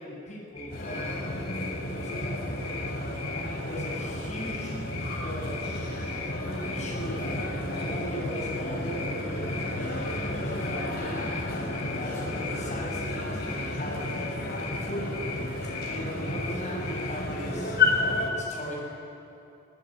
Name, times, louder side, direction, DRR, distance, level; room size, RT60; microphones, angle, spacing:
voice 1, 0.0-2.4 3.3-5.8 6.6-11.3 11.8-14.2 14.7-15.3 15.9-17.8 18.3-18.9, left 1 dB, 35° left, -3 dB, 8.0 m, -39 dB
sound 1, 0.6-17.3, left 4 dB, 85° left, 2.4 m, -40 dB
sound 2, 0.7-18.3, left 2 dB, 50° left, 3.9 m, -32 dB
27.0 x 19.0 x 9.4 m, 2.7 s
head